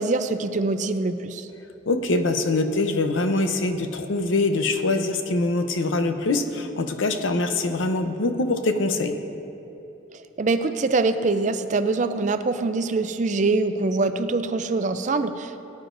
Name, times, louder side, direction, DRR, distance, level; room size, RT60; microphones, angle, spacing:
voice 1, 0.0-1.5 10.4-15.6, right 3 dB, 40° right, 10 dB, 0.4 m, -24 dB
voice 2, 1.9-9.2, left 2 dB, 85° left, 7 dB, 0.7 m, -24 dB
18.5 x 9.5 x 2.6 m, 3.0 s
head